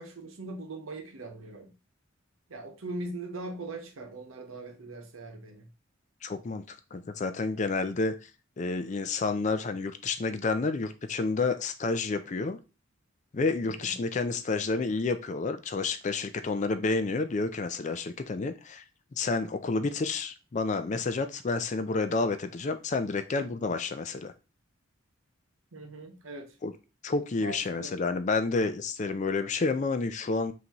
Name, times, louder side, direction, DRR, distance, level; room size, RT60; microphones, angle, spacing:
voice 1, 0.0-1.7 2.5-5.7 13.6-14.0 25.7-26.6 27.4-28.0, right 2 dB, 80° right, 0.9 m, -41 dB
voice 2, 6.2-6.6 6.9-8.3 8.6-12.6 13.3-18.8 19.2-24.3 26.6-26.7 27.0-30.5, left 3 dB, 35° left, 0.4 m, -30 dB
5.6 x 2.7 x 2.9 m
head